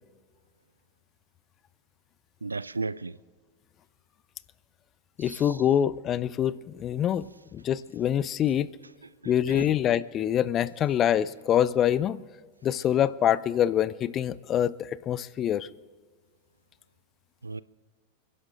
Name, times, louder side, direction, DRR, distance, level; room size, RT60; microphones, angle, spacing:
voice 1, 2.4-3.2 9.2-9.7 17.4-17.6, right 3 dB, 80° right, 0.4 m, -34 dB
voice 2, 5.2-7.3 7.5-8.7 9.3-12.2 12.6-15.7, left 10 dB, 30° left, 0.5 m, -25 dB
30.0 x 11.0 x 3.7 m
figure-of-eight pair, 90°, 0 cm